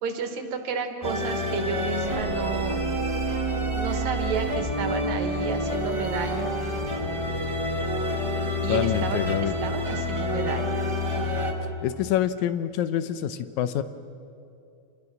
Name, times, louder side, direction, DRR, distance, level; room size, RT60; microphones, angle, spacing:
voice 1, 0.0-2.8 3.8-6.5 8.6-10.8, right 5 dB, 75° right, 5 dB, 2.8 m, -31 dB
sound 1, 1.0-11.5, equal, 20° right, 0.9 m, -28 dB
voice 2, 8.7-9.5 11.8-13.8, left 11 dB, 80° left, 12 dB, 2.1 m, -26 dB
27.0 x 20.5 x 5.9 m, 2.5 s
omnidirectional pair, 3.4 m